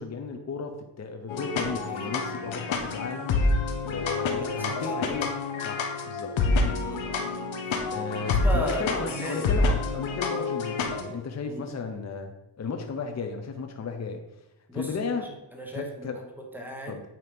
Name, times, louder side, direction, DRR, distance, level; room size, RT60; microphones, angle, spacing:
voice 1, 0.0-3.4 3.8-5.4 5.6-6.4 7.9-14.2 14.7-15.3 15.7-16.2 16.9-17.0, left 4 dB, 35° left, 5 dB, 0.8 m, -34 dB
sound 1, 1.3-11.0, left 3 dB, 75° left, 1.1 m, -28 dB
voice 2, 4.3-5.0 6.8-7.2 8.4-9.6 11.5-11.6 14.7-15.0 15.2-17.0, equal, 5° right, 1 dB, 1.4 m, -36 dB
8.7 x 3.1 x 5.2 m, 0.90 s
cardioid pair, 100°, 46 cm